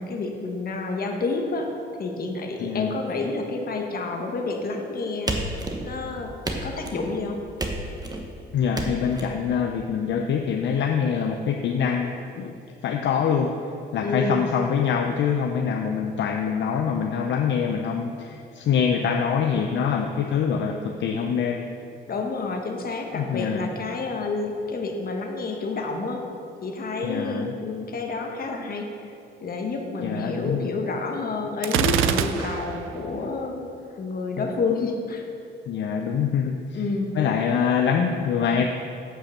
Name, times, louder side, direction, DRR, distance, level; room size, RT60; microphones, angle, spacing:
voice 1, 0.0-1.7 2.0-5.4 5.8-6.3 6.6-7.4 14.0-14.5 22.1-26.2 26.6-29.1 29.4-33.7 34.0-35.2 36.7-37.1, left 3 dB, 50° left, 3 dB, 1.3 m, -29 dB
voice 2, 2.6-3.0 8.5-12.5 12.8-21.6 23.1-23.7 27.0-27.5 30.0-30.8 34.4-34.5 35.7-36.8 37.1-38.6, left 7 dB, 65° left, 3 dB, 0.6 m, -25 dB
sound 1, 5.3-6.0 6.4-7.1 7.6-8.2 8.7-9.3, right 2 dB, 20° right, 1.1 m, -30 dB
Gunshot gunfire, 31.6-32.9, right 9 dB, 90° right, 0.5 m, -24 dB
8.8 x 5.6 x 6.5 m, 2.6 s
cardioid pair, 90°, 20 cm